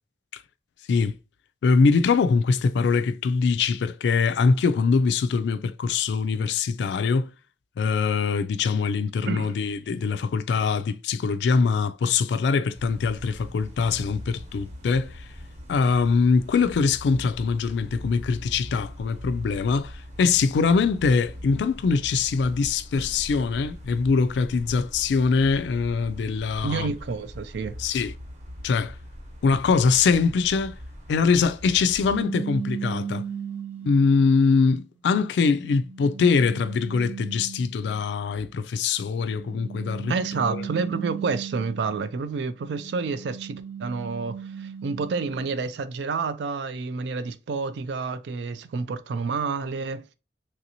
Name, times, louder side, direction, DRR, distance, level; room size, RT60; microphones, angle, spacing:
voice 1, 1.6-7.3 7.8-15.3 15.7-26.9 27.8-28.1 28.6-29.0 29.4-30.8 31.1-33.2 33.8-40.1 40.4-40.6, left 5 dB, 70° left, 0.3 m, -23 dB
sound 1, 12.7-32.2, equal, 40° right, 0.9 m, -41 dB
voice 2, 26.6-27.8 40.1-50.1, right 4 dB, 70° right, 0.4 m, -29 dB
sound 2, 32.1-34.3 34.9-38.0 39.2-42.1 42.6-45.5, right 7 dB, 10° right, 0.5 m, -36 dB
3.3 x 2.6 x 2.8 m
head